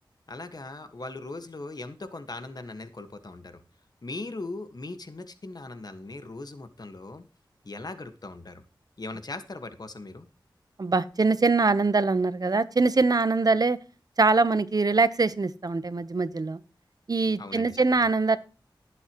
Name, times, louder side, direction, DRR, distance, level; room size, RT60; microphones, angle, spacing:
voice 1, 0.3-3.6 4.0-7.2 7.6-8.6 9.0-10.3 17.4-18.1, left 2 dB, 50° left, 9 dB, 1.6 m, -39 dB
voice 2, 10.8-13.8 14.2-16.6 17.1-18.4, right 3 dB, 50° right, 14 dB, 1.0 m, -23 dB
18.5 x 8.1 x 3.1 m, 0.34 s
wide cardioid pair, 60°, 8 cm